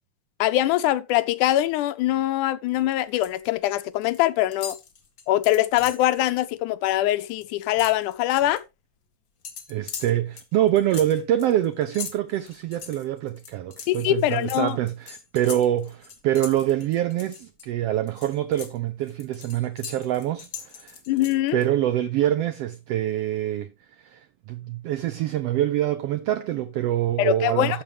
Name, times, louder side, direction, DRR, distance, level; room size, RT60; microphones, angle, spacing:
voice 1, 0.4-4.8 5.3-8.6 13.9-14.8 21.1-21.6 27.2-27.8, left 14 dB, 85° left, 2.2 m, -23 dB
sound 1, 2.8-3.5 3.7-4.2 4.5-6.1 6.5-6.7 7.0-8.6 9.4-17.7 18.1-21.7, left 7 dB, 45° left, 1.9 m, -40 dB
voice 2, 9.7-21.0 21.5-27.8, right 12 dB, 90° right, 1.4 m, -25 dB
12.5 x 7.1 x 3.3 m
omnidirectional pair, 3.5 m